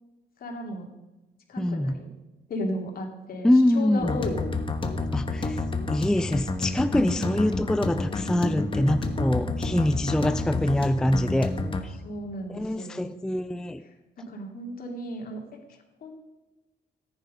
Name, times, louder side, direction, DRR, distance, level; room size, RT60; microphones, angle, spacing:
voice 1, 0.4-0.9 1.5-2.1 2.5-4.5 6.9-7.3 11.9-13.1 13.8-16.1, left 1 dB, 60° left, 2 dB, 2.9 m, -35 dB
voice 2, 1.6-1.9 3.4-4.2 5.1-5.6 5.9-11.5 11.8-12.0 12.5-13.8, left 1 dB, 5° left, 10 dB, 0.4 m, -24 dB
sound 1, 4.0-11.8, left 3 dB, 30° left, 1.3 m, -29 dB
14.0 x 10.0 x 5.4 m, 1.1 s
cardioid pair, 135°, 17 cm